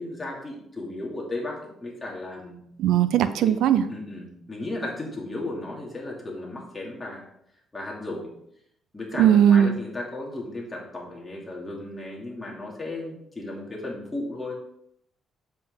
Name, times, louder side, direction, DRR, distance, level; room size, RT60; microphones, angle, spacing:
voice 1, 0.0-2.6 3.2-3.5 3.9-7.2 7.7-8.3 8.9-14.5, left 2 dB, 20° left, -2 dB, 2.8 m, -35 dB
voice 2, 2.8-3.8 9.2-9.8, right 9 dB, 90° right, 12 dB, 0.6 m, -18 dB
7.7 x 7.6 x 3.9 m, 0.72 s
cardioid pair, 115°, 0 cm